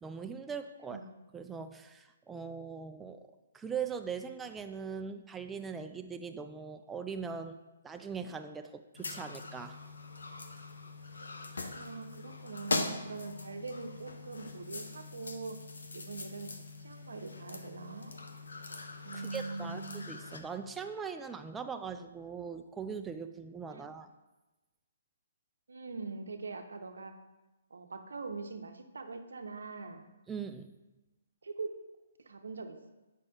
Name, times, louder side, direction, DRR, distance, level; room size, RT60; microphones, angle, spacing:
voice 1, 0.0-1.0 1.3-3.3 3.5-7.6 7.8-9.8 19.1-19.8 20.1-24.1 30.3-30.7, right 6 dB, 10° right, 7 dB, 0.3 m, -40 dB
sound 1, 9.0-20.4, left 3 dB, 85° left, 0.7 m, -41 dB
voice 2, 11.7-15.6 15.9-18.1 19.0-20.1 23.7-23.9 25.7-27.1 27.7-30.1 31.4-31.8 32.2-32.9, right 3 dB, 80° right, 6 dB, 0.7 m, -42 dB
8.3 x 5.3 x 2.3 m, 1.1 s
hypercardioid pair, 145°, 0 cm